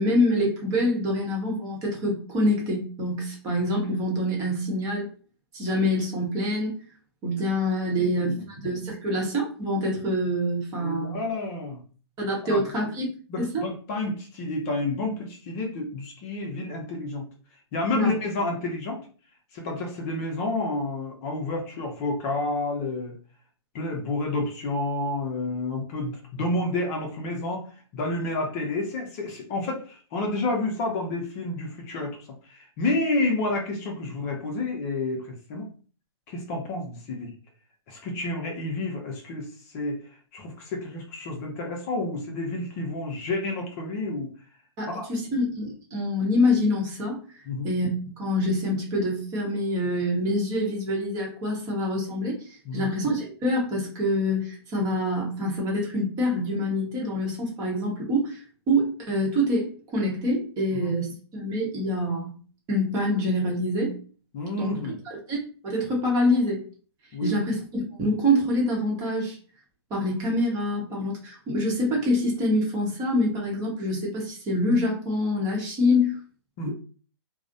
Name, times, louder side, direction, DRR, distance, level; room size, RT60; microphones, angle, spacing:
voice 1, 0.0-5.1 5.5-6.8 7.2-8.3 8.5-11.2 12.2-13.1 13.4-13.7 17.9-18.1 44.8-47.2 47.6-62.3 62.7-64.0 64.5-64.8 65.0-65.4 65.6-66.7 67.2-69.4 69.9-76.2, left 1 dB, 25° right, -2 dB, 0.8 m, -26 dB
voice 2, 8.0-8.5 10.8-11.8 12.4-12.6 13.3-17.3 17.7-19.0 19.5-23.2 23.7-27.7 27.9-32.2 32.5-35.7 36.3-37.3 37.9-39.5 39.7-40.0 40.3-44.3 44.9-45.1 47.5-47.7 52.7-52.9 60.7-60.9 64.3-65.0 67.1-67.3 76.6-76.7, left 2 dB, 35° left, 1 dB, 0.6 m, -30 dB
2.4 x 2.0 x 2.6 m, 0.39 s
hypercardioid pair, 135°, 15 cm